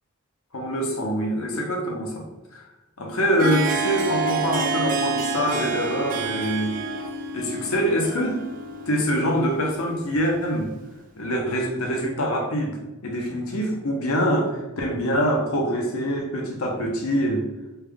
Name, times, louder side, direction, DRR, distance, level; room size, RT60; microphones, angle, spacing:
voice 1, 0.5-2.6 3.0-6.8 7.3-8.4 8.9-10.7 11.2-17.4, equal, 85° left, 1 dB, 0.7 m, -25 dB
Harp, 3.1-10.8, right 3 dB, 40° right, 0.4 m, -29 dB
3.3 x 2.2 x 3.5 m, 1.0 s
head